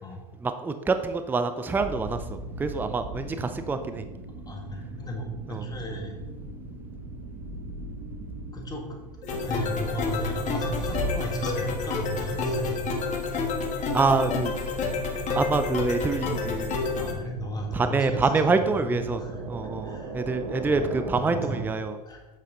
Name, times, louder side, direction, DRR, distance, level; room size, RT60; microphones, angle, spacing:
voice 1, 0.4-4.1 5.5-5.6 13.9-14.5 15.3-16.7 17.7-19.2 19.5-22.0, right 4 dB, 10° right, 9 dB, 0.5 m, -26 dB
sound 1, 1.7-21.6, right 2 dB, 55° right, 1.6 m, -39 dB
voice 2, 4.4-6.2 8.5-9.0 9.3-13.0 16.9-18.5 18.8-18.9 19.2-19.5 19.8-20.1 21.1-21.6 22.1-22.2, right 1 dB, 20° left, 1 dB, 1.9 m, -35 dB
sound 2, 9.2-17.1, left 4 dB, 35° left, 1.5 m, -29 dB
8.0 x 6.7 x 3.9 m, 1.2 s
hypercardioid pair, 100°, 21 cm